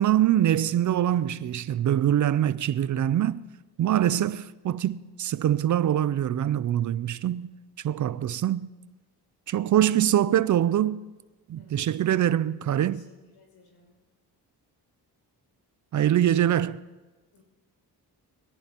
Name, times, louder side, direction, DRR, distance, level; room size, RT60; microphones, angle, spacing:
voice 1, 0.0-3.4 3.8-7.5 7.8-8.7 9.5-11.0 11.5-13.0 15.9-16.8, right 11 dB, 50° right, 0.4 m, -24 dB
voice 2, 12.9-13.9 17.3-17.4, left 4 dB, 80° left, 6.0 m, -58 dB
22.0 x 17.5 x 2.9 m
cardioid pair, 100°, 40 cm